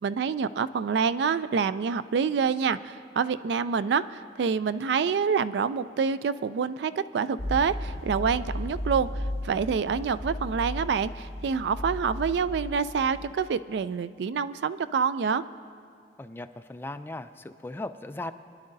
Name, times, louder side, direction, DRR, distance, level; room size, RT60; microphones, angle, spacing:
voice 1, 0.0-15.4, right 6 dB, 70° right, 15 dB, 0.3 m, -27 dB
sound 1, 7.4-13.3, left 1 dB, 65° left, 1.5 m, -35 dB
voice 2, 16.2-18.3, left 2 dB, 10° left, 9 dB, 0.3 m, -38 dB
24.0 x 10.5 x 2.6 m, 2.3 s
head